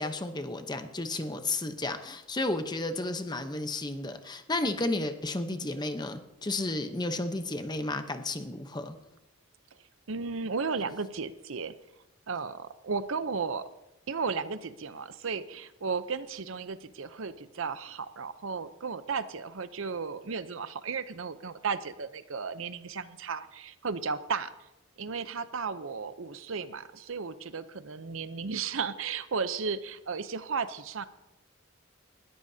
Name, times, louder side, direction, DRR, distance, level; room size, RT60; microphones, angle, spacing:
voice 1, 0.0-9.0, left 2 dB, 20° left, 8 dB, 0.8 m, -32 dB
voice 2, 10.1-11.7 12.3-13.6 14.1-24.5 25.0-31.0, right 5 dB, 70° right, 13 dB, 0.7 m, -34 dB
20.0 x 13.5 x 2.8 m, 0.94 s
head